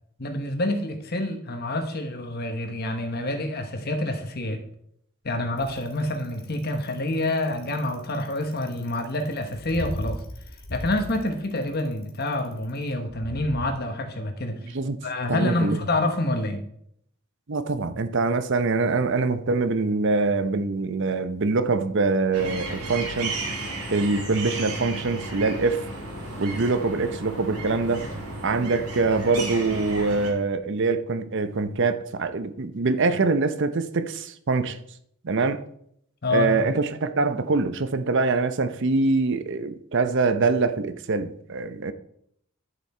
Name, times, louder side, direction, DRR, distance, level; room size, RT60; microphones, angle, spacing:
voice 1, 0.2-4.6 5.2-10.2 10.7-14.6 15.0-16.6 36.2-36.5, left 1 dB, 45° left, 1.1 m, -27 dB
Bicycle, 5.6-13.7, equal, 65° left, 2.4 m, -37 dB
voice 2, 14.6-15.0 15.3-15.8 17.5-23.3 23.9-25.8 26.4-28.1 28.4-34.8 35.2-35.6 36.3-41.9, right 3 dB, 55° right, 0.7 m, -24 dB
sound 1, 22.3-30.3, right 2 dB, 85° right, 2.5 m, -34 dB
11.5 x 7.1 x 4.3 m
head